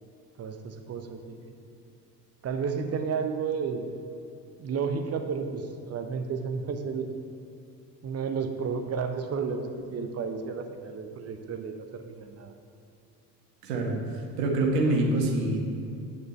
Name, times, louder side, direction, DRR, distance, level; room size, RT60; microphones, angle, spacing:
voice 1, 0.4-1.6 2.4-3.9 4.6-7.1 8.0-12.5, right 5 dB, 30° right, 6 dB, 0.9 m, -32 dB
voice 2, 13.6-15.6, right 2 dB, 70° right, 1 dB, 1.6 m, -26 dB
9.1 x 6.6 x 4.4 m, 2.5 s
figure-of-eight pair, 65°, 49 cm